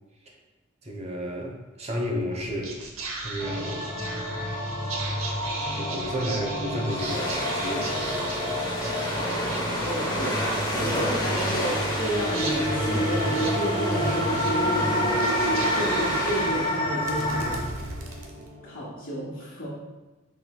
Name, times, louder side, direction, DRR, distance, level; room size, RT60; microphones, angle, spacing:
voice 1, 0.8-2.8 3.2-3.9 5.6-9.0, equal, 30° right, 0 dB, 0.7 m, -32 dB
Whispering, 2.3-18.9, right 2 dB, 85° right, 0.7 m, -38 dB
sound 1, 3.4-17.5, equal, 40° left, 1.2 m, -29 dB
sound 2, 6.9-16.8, equal, 20° left, 1.0 m, -31 dB
voice 2, 9.8-10.5 10.8-15.2 15.7-17.6 18.6-19.7, equal, 65° left, -12 dB, 1.4 m, -32 dB
5.4 x 4.4 x 2.2 m, 1.1 s
head